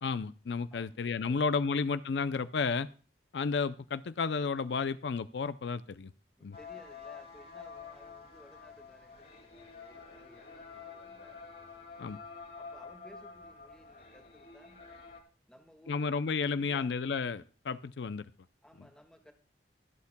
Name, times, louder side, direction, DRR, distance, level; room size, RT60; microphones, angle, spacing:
voice 1, 0.0-2.9 3.3-6.1 6.4-6.6 12.0-12.2 15.9-18.3, left 5 dB, 70° left, 14 dB, 0.5 m, -32 dB
voice 2, 0.7-1.9 6.4-11.4 12.6-14.8 15.5-16.9 18.6-19.3, equal, 5° left, 3 dB, 1.7 m, -57 dB
sound 1, 6.5-15.2, left 5 dB, 55° left, 2.6 m, -49 dB
23.5 x 8.4 x 2.2 m, 0.40 s
head